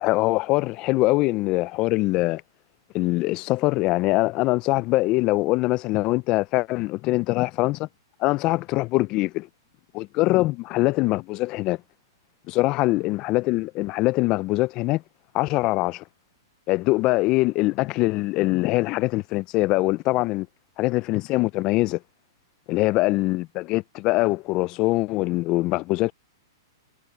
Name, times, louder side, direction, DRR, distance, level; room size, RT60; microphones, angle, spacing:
voice 1, 0.0-2.4 2.9-7.9 8.2-9.5 9.9-11.8 12.5-15.0 15.3-16.0 16.7-20.5 20.8-22.0 22.7-26.1, left 20 dB, 30° left, 0.3 m, -23 dB
hypercardioid pair, 155°, 2 cm